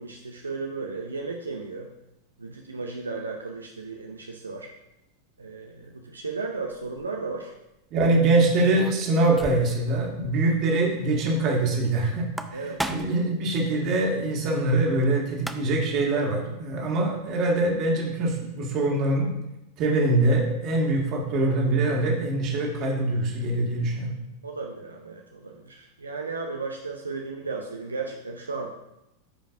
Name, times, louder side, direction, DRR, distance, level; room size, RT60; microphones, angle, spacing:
voice 1, 0.0-1.9 2.4-4.7 5.4-7.5 12.5-12.9 24.4-28.7, right 4 dB, 75° right, 2 dB, 0.6 m, -35 dB
sound 1, 6.8-7.0 8.5-10.0 10.2-10.3 10.6-10.7 12.1-13.3 15.0-15.1 15.3-15.9, right 1 dB, 5° right, 0.5 m, -35 dB
voice 2, 7.9-19.3 19.8-24.2, right 2 dB, 35° right, -1 dB, 1.9 m, -24 dB
14.0 x 5.2 x 2.6 m, 0.91 s
figure-of-eight pair, 90°, 0 cm